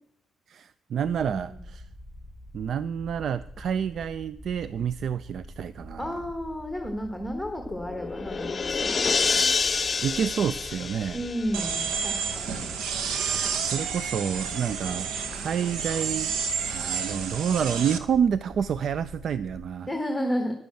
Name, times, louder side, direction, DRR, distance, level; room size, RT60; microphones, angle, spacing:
voice 1, 0.5-1.9 2.5-6.2 10.0-11.2 13.1-16.3 16.6-19.9, right 8 dB, 60° right, 16 dB, 0.3 m, -29 dB
sound 1, 1.0-19.7, left 1 dB, 30° right, 1.5 m, -46 dB
voice 2, 1.3-1.6 6.0-9.5 11.1-12.6 13.3-13.5 19.9-20.5, equal, ahead, 4 dB, 1.4 m, -32 dB
sound 2, 7.6-12.2, left 5 dB, 35° left, 0.5 m, -28 dB
sound 3, 11.5-18.0, right 6 dB, 85° right, 1.0 m, -30 dB
10.5 x 6.9 x 7.6 m, 0.76 s
cardioid pair, 90°, 0 cm